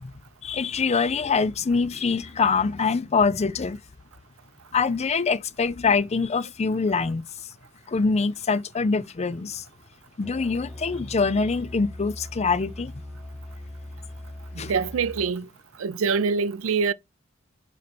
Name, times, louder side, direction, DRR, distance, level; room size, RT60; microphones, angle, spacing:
voice 1, 0.4-3.8 4.7-7.2 7.9-9.6 10.2-12.9 14.6-14.7, left 4 dB, 30° left, 0.5 m, -24 dB
Musical instrument, 10.2-15.3, left 1 dB, 5° right, 1.6 m, -40 dB
voice 2, 14.5-15.5 15.8-16.9, right 5 dB, 80° right, 0.5 m, -25 dB
8.4 x 3.2 x 4.1 m
head